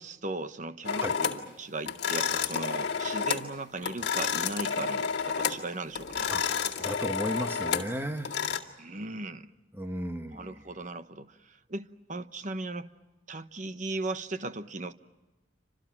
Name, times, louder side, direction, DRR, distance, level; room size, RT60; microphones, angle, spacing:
voice 1, 0.0-6.3 8.8-9.5 10.3-12.9 13.3-14.9, right 2 dB, 40° right, 1.0 m, -37 dB
sound 1, 0.8-1.4 1.9-3.5 3.8-5.7 5.9-8.6, left 6 dB, 65° left, 2.1 m, -30 dB
voice 2, 6.8-8.3 9.7-10.6, equal, 10° right, 1.2 m, -34 dB
29.5 x 26.5 x 6.0 m
head